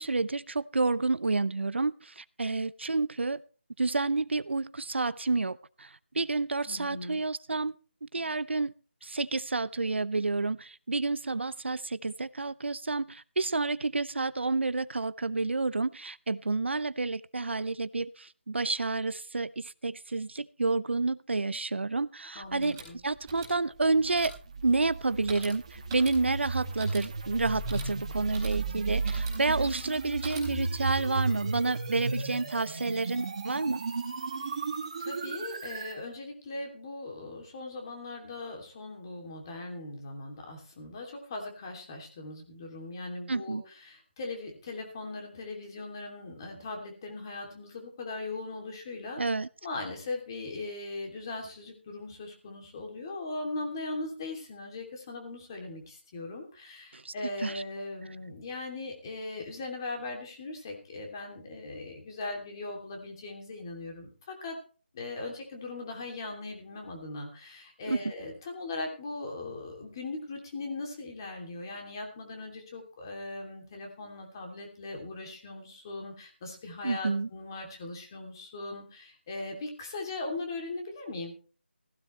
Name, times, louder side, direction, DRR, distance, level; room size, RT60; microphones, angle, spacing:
voice 1, 0.0-3.4 3.8-7.8 8.0-8.7 9.0-24.4 24.6-33.8 43.3-43.6 49.2-49.5 56.9-57.1 57.4-57.6 67.9-68.0 76.8-77.3, right 3 dB, 70° right, 17 dB, 0.7 m, -30 dB
voice 2, 6.7-7.2 22.3-23.0 34.4-34.6 35.0-49.2 49.6-64.6 64.9-81.3, left 2 dB, 20° left, 2 dB, 2.9 m, -39 dB
sound 1, 22.4-30.8, right 3 dB, 10° right, 4.6 m, -47 dB
sound 2, 23.8-36.0, right 4 dB, 30° right, 2.2 m, -34 dB
16.0 x 15.5 x 3.3 m, 0.38 s
figure-of-eight pair, 170°, 6 cm